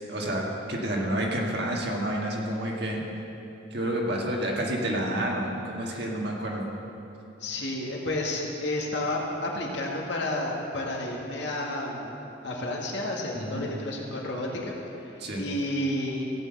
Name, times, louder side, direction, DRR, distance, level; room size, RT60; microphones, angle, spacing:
voice 1, 0.1-0.4 0.7-3.0 3.7-6.7 13.3-13.7 15.2-15.4, right 1 dB, 55° right, -1 dB, 1.9 m, -29 dB
voice 2, 7.4-12.1 12.4-16.3, left 1 dB, 65° left, -1 dB, 1.9 m, -31 dB
15.5 x 6.3 x 7.9 m, 2.9 s
head